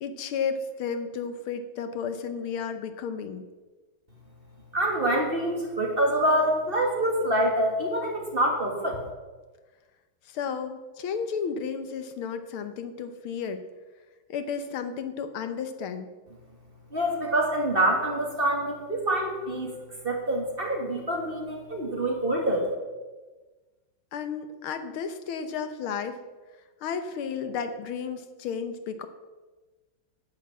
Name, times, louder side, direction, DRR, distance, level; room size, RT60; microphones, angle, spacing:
voice 1, 0.0-3.5 10.3-13.6 14.3-16.1 24.1-26.2 26.8-29.1, left 6 dB, 80° left, 9 dB, 1.8 m, -33 dB
voice 2, 4.7-9.0 16.9-19.7 20.0-22.6, right 1 dB, 25° right, 0 dB, 2.1 m, -26 dB
9.9 x 9.2 x 7.4 m, 1.3 s
omnidirectional pair, 2.3 m